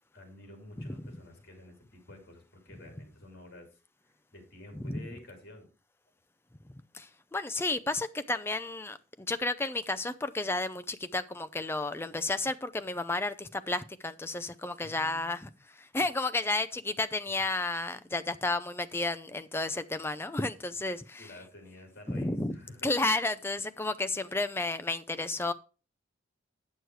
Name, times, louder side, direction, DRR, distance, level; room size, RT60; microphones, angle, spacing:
voice 1, 0.1-3.7 4.0-5.7 14.8-15.5 21.2-22.9, left 1 dB, 50° left, 3.0 m, -51 dB
voice 2, 6.7-21.3 22.1-22.6 22.8-25.5, left 2 dB, 10° left, 0.4 m, -32 dB
9.3 x 6.5 x 4.6 m
head